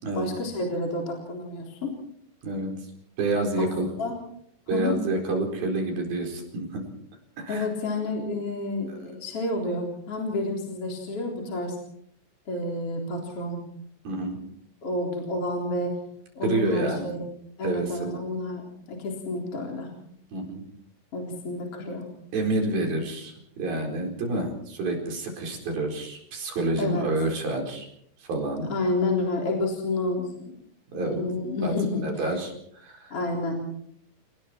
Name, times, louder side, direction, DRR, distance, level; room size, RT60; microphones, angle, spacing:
voice 1, 0.1-2.0 3.6-4.2 4.7-4.9 7.5-11.8 12.5-13.6 14.8-15.9 16.4-17.2 17.6-19.9 21.1-22.0 26.8-27.1 28.7-30.5 30.9-32.4 33.1-33.6, left 2 dB, 35° left, 0 dB, 4.3 m, -30 dB
voice 2, 2.4-2.9 3.2-3.9 4.7-6.9 7.4-7.7 14.0-14.4 16.4-17.1 17.6-18.2 20.3-20.7 22.3-27.9 28.2-28.7 30.9-31.2 31.6-31.7 32.0-33.2, right 2 dB, 55° right, 1 dB, 6.1 m, -28 dB
29.0 x 20.0 x 4.5 m, 0.68 s
omnidirectional pair, 5.3 m